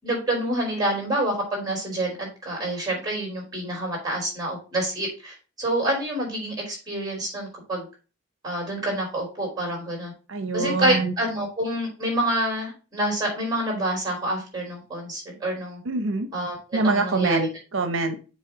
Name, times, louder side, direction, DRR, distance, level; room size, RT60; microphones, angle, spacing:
voice 1, 0.0-7.9 8.4-10.1 10.5-15.8 16.3-16.6 16.8-17.5, right 1 dB, 20° right, 4.2 m, -27 dB
voice 2, 10.3-11.1 15.9-16.3 16.7-18.2, right 3 dB, 75° right, 0.7 m, -24 dB
7.3 x 3.3 x 6.0 m
head